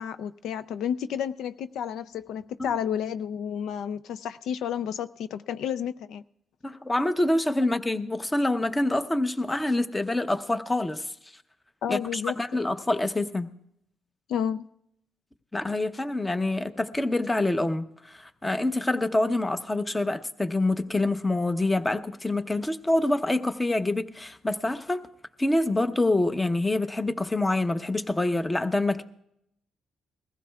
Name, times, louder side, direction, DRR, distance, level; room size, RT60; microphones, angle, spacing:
voice 1, 0.0-6.2 11.8-12.4 14.3-14.6, left 8 dB, 80° left, 0.4 m, -31 dB
voice 2, 6.6-11.1 11.9-13.5 15.5-25.0 25.4-29.0, left 2 dB, 15° left, 0.8 m, -26 dB
21.5 x 15.0 x 2.3 m
cardioid pair, 90°, 0 cm